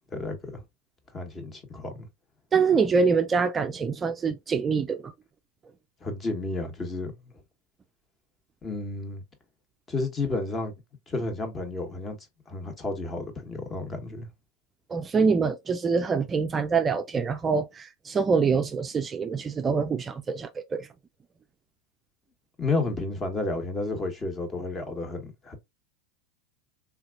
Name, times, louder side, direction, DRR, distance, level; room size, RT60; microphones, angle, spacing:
voice 1, 0.1-0.6 1.1-2.1 6.0-7.3 8.6-9.2 9.9-10.7 11.1-12.2 12.5-14.3 22.6-25.6, left 3 dB, 25° left, 1.2 m, -31 dB
voice 2, 2.5-5.0 14.9-20.9, right 5 dB, 25° right, 0.4 m, -25 dB
3.5 x 2.9 x 2.5 m
hypercardioid pair, 95°, 0 cm